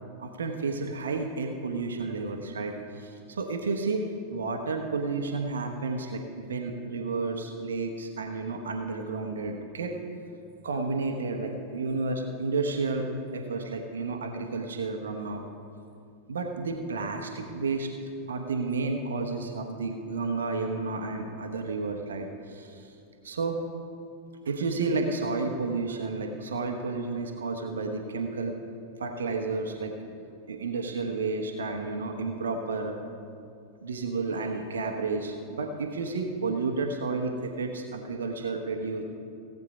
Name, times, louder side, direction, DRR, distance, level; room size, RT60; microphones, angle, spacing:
voice 1, 0.2-4.0 4.3-9.9 10.6-15.4 16.3-17.9 18.3-22.9 23.2-23.6 24.4-28.5 29.0-29.9 30.5-33.0 33.8-39.0, right 3 dB, 70° right, 3 dB, 1.1 m, -31 dB
17.0 x 8.2 x 5.1 m, 2.5 s
figure-of-eight pair, 90°, 0 cm